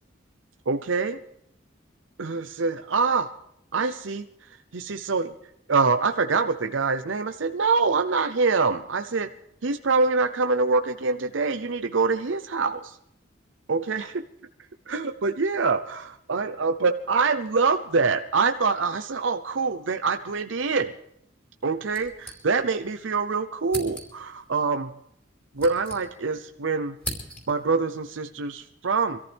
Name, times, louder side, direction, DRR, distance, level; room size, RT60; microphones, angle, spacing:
voice 1, 0.7-1.2 2.2-3.3 3.7-5.3 5.7-9.3 9.6-13.0 13.7-14.1 14.9-20.9 21.6-24.9 25.5-27.0 27.5-29.2, right 4 dB, 80° right, 7 dB, 0.7 m, -25 dB
sound 1, 21.9-22.9 23.2-23.3 23.7-24.4 25.2-26.5 26.7-27.7, equal, 10° left, 4.7 m, -39 dB
25.5 x 14.5 x 3.4 m, 0.75 s
head